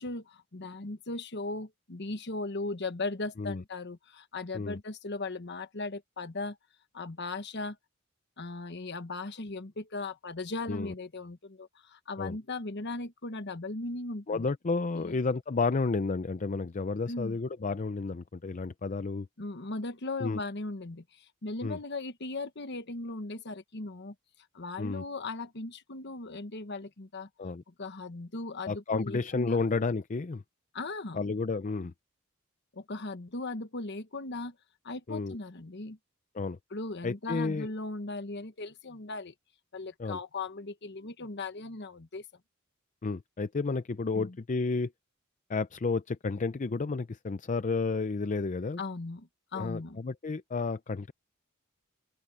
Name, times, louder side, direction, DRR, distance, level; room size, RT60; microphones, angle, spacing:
voice 1, 0.0-6.6 6.9-7.8 8.4-14.5 14.9-15.2 17.1-17.4 19.4-24.1 24.5-27.3 27.7-29.6 30.7-31.4 32.7-34.5 34.8-36.0 36.7-39.3 39.7-42.2 44.1-44.4 48.8-50.0, left 3 dB, 55° left, 1.2 m, -38 dB
voice 2, 14.3-19.3 20.2-20.4 21.6-21.8 24.8-25.0 27.4-27.6 28.7-30.4 31.1-31.9 35.1-35.4 36.3-36.6 37.0-37.7 40.0-40.2 43.0-44.9 45.5-48.8 49.5-51.1, left 4 dB, 35° left, 0.5 m, -31 dB
open air
head